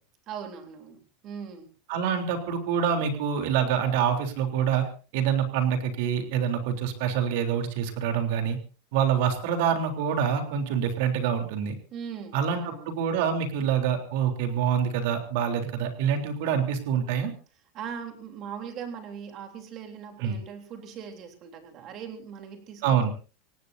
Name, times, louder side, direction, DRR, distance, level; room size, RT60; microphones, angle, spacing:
voice 1, 0.3-1.7 11.9-13.0 17.7-23.1, right 7 dB, 30° right, 5 dB, 3.4 m, -40 dB
voice 2, 1.9-4.9 5.1-8.6 8.9-11.7 12.3-17.3 20.2-20.4 22.8-23.1, right 8 dB, 55° right, 5 dB, 3.5 m, -26 dB
26.0 x 18.0 x 2.7 m, 0.35 s
supercardioid pair, 180°, 0 cm